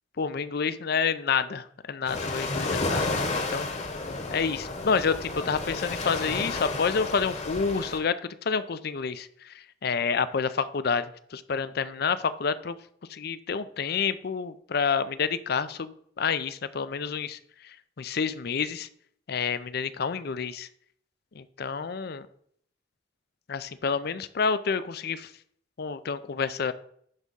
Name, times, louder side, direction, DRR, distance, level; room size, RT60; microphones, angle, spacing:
voice 1, 0.2-3.7 4.3-12.8 13.1-17.4 17.6-18.9 19.3-20.7 21.3-22.3 23.5-25.3 25.8-26.7, left 5 dB, 55° left, 14 dB, 0.5 m, -29 dB
sound 1, 2.1-8.0, left 3 dB, 40° left, 1.2 m, -31 dB
10.5 x 3.6 x 5.4 m, 0.65 s
head